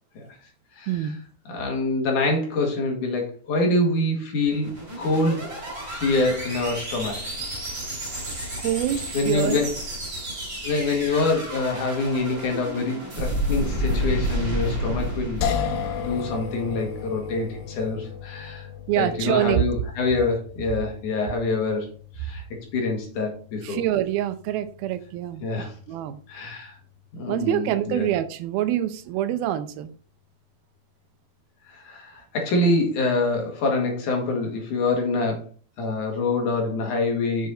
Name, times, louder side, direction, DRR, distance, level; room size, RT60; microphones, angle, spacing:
voice 1, 0.9-1.2 8.6-9.6 18.9-19.6 23.6-25.4 25.9-26.2 27.3-29.9, right 12 dB, 85° right, 12 dB, 2.6 m, -25 dB
voice 2, 1.5-4.7 5.0-5.5 5.9-7.3 9.1-9.8 10.6-15.4 16.0-18.7 19.0-21.9 22.2-23.8 25.4-25.7 26.3-26.8 27.1-28.1 31.7-35.4 35.8-37.5, left 2 dB, 60° left, 1 dB, 3.3 m, -25 dB
sound 1, 4.4-16.8, equal, 30° right, 4.7 m, -31 dB
sound 2, 15.4-28.5, left 7 dB, 80° left, 2.9 m, -36 dB
8.0 x 6.5 x 4.3 m, 0.42 s
omnidirectional pair, 4.3 m